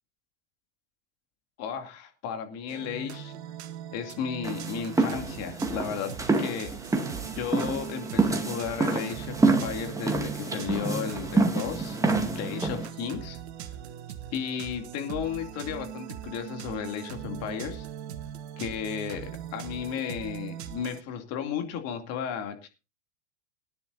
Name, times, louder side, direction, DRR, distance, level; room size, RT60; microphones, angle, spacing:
voice 1, 1.6-3.3 3.9-7.1 7.3-13.4 14.3-17.9 18.6-22.7, left 8 dB, 45° left, 6 dB, 2.6 m, -34 dB
sound 1, 2.7-21.0, right 11 dB, 65° right, 1.3 m, -40 dB
sound 2, 4.4-12.9, right 3 dB, 10° right, 2.0 m, -28 dB
20.5 x 10.5 x 2.6 m, 0.30 s
hypercardioid pair, 100°, 35 cm